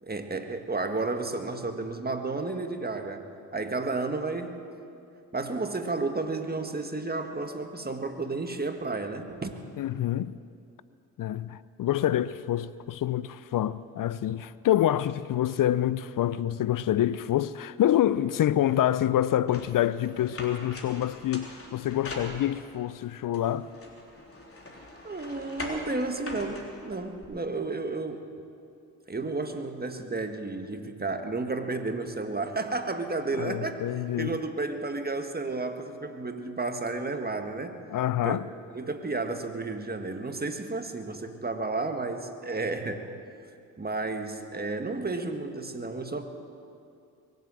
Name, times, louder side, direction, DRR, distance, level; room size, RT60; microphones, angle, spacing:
voice 1, 0.0-3.2 3.5-4.7 5.3-9.5 25.0-28.3 29.1-33.8 34.2-37.8 38.2-38.4 38.7-43.1 43.8-46.2, right 3 dB, 20° right, 1.6 m, -32 dB
voice 2, 9.8-10.4 11.2-23.7 33.4-34.4 37.9-38.5, left 12 dB, 45° left, 0.6 m, -27 dB
sound 1, 19.5-22.8 23.3-27.2, left 1 dB, 30° left, 3.3 m, -42 dB
22.5 x 8.1 x 7.6 m
hypercardioid pair, 50°, 44 cm